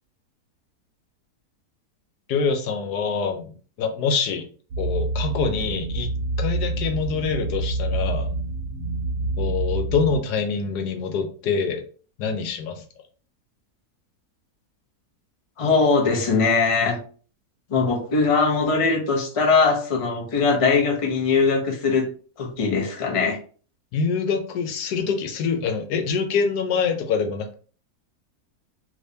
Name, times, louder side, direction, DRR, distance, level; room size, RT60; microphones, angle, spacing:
voice 1, 2.3-4.4 4.8-6.1 6.4-8.3 9.4-11.8 12.2-12.8 23.9-27.5, left 5 dB, 85° left, 5 dB, 1.3 m, -25 dB
sound 1, 4.7-10.2, right 2 dB, 65° right, 1.1 m, -27 dB
voice 2, 15.6-17.0 17.7-22.1 22.4-23.4, left 4 dB, 35° left, 1 dB, 0.5 m, -21 dB
3.4 x 3.0 x 2.7 m, 0.41 s
omnidirectional pair, 1.7 m